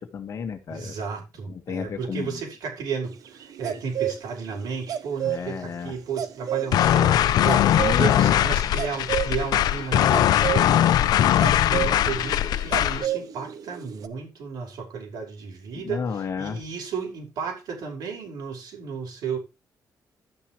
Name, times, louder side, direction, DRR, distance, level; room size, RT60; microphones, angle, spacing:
voice 1, 0.0-0.9 1.5-2.4 5.2-6.0 7.7-8.4 11.2-12.0 15.7-16.6, left 6 dB, 50° left, 1.7 m, -32 dB
voice 2, 0.7-10.9 11.7-16.1 16.4-19.4, right 6 dB, 90° right, 5.4 m, -33 dB
sound 1, 3.3-5.4 5.8-5.9 6.2-14.1, right 11 dB, 60° right, 0.8 m, -31 dB
sound 2, 6.7-13.1, left 11 dB, 80° left, 0.6 m, -20 dB
12.0 x 9.8 x 3.2 m
cardioid pair, 150°, 7 cm